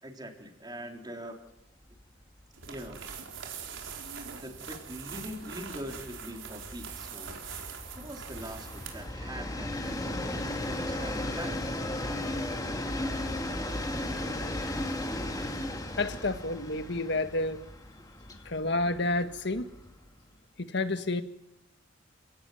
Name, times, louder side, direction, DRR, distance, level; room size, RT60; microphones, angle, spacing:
voice 1, 0.0-1.4 2.7-3.0 4.4-7.3 7.9-11.6, equal, 20° right, 3 dB, 3.8 m, -43 dB
Train, 1.9-2.1 2.4-2.5 2.8-20.2, left 1 dB, 20° left, 2.5 m, -36 dB
sound 1, 2.5-9.1, right 6 dB, 80° right, 4.5 m, -43 dB
Bowed string instrument, 9.8-14.2, equal, 35° right, 7.3 m, -50 dB
voice 2, 16.0-17.6 18.3-19.7 20.6-21.2, left 2 dB, 60° left, 9 dB, 1.7 m, -30 dB
29.5 x 18.0 x 9.4 m, 0.87 s
head